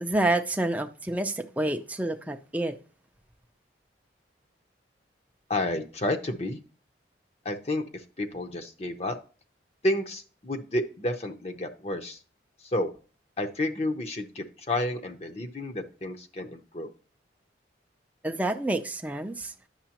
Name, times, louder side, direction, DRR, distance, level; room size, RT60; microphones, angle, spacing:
voice 1, 0.0-2.7 18.2-19.5, right 1 dB, 10° right, 0.5 m, -28 dB
voice 2, 5.5-6.6 7.4-9.1 9.8-12.2 12.7-12.9 13.4-16.9, left 1 dB, 35° left, 0.7 m, -30 dB
10.0 x 6.5 x 2.9 m
head